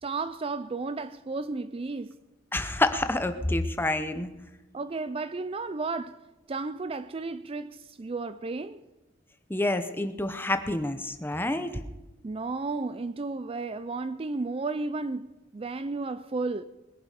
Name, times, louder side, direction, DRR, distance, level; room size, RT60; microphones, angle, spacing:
voice 1, 0.0-2.1 4.7-6.2 6.5-8.8 12.2-15.3 15.5-16.6, right 3 dB, 30° right, 0.4 m, -33 dB
voice 2, 2.5-4.3 9.5-11.8, left 2 dB, 10° left, 0.9 m, -28 dB
21.5 x 11.0 x 5.0 m
head